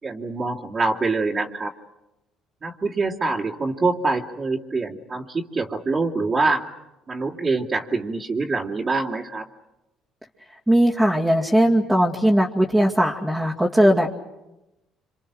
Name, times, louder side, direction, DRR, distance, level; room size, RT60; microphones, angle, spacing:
voice 1, 0.0-1.7 2.6-6.6 7.1-9.5, right 3 dB, 35° right, -4 dB, 2.6 m, -25 dB
voice 2, 10.7-14.1, equal, 5° right, -4 dB, 2.5 m, -19 dB
28.0 x 26.0 x 6.3 m, 0.96 s
supercardioid pair, 65°, 0 cm